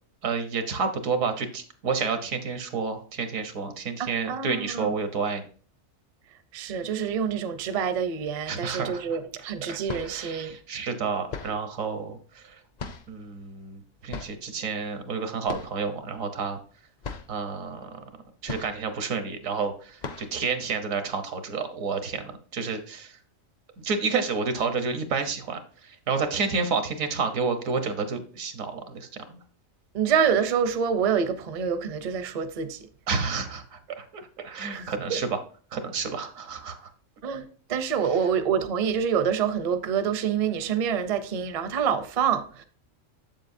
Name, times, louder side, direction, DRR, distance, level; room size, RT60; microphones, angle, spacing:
voice 1, 0.2-5.4 8.5-9.2 9.7-12.5 13.1-16.6 17.3-17.9 18.4-23.2 23.8-29.4 33.1-35.4 35.7-36.9, right 5 dB, 85° right, 1.4 m, -30 dB
voice 2, 4.0-4.9 6.5-10.5 29.9-32.8 34.7-35.2 37.2-42.6, right 7 dB, 40° right, 0.5 m, -27 dB
sound 1, 9.9-10.3 11.3-11.7 12.8-13.3 14.1-14.5 15.5-15.9 16.2-16.3 16.7-16.8 17.0-17.4 18.5-19.0 19.4-19.6 20.0-20.4, left 4 dB, 45° left, 0.6 m, -38 dB
7.5 x 7.5 x 2.6 m
omnidirectional pair, 1.4 m